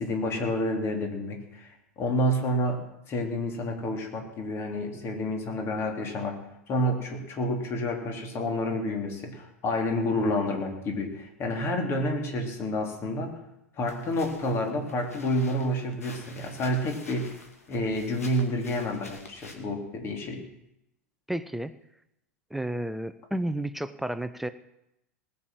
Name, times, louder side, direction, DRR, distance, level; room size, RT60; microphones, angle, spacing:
voice 1, 0.0-2.8 3.1-6.4 6.7-13.3 13.8-17.4 17.7-20.5, left 1 dB, 35° left, 3 dB, 3.2 m, -29 dB
sound 1, 13.9-19.6, left 2 dB, 80° left, 2.3 m, -48 dB
voice 2, 21.3-21.7 22.5-24.5, right 1 dB, 5° right, 11 dB, 0.7 m, -31 dB
19.5 x 7.1 x 7.5 m, 0.84 s
figure-of-eight pair, 90°, 8 cm